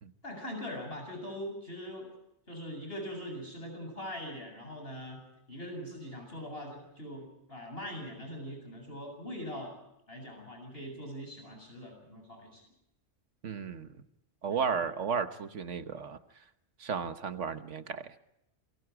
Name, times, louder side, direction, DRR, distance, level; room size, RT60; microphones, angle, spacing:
voice 1, 0.2-2.1 2.5-5.2 5.5-9.7 10.1-12.6 14.5-14.6, equal, 55° left, 3 dB, 8.0 m, -42 dB
voice 2, 13.4-13.9 14.4-16.2 16.8-18.2, right 6 dB, 80° right, 9 dB, 1.5 m, -34 dB
28.5 x 23.0 x 4.8 m, 0.82 s
omnidirectional pair, 1.2 m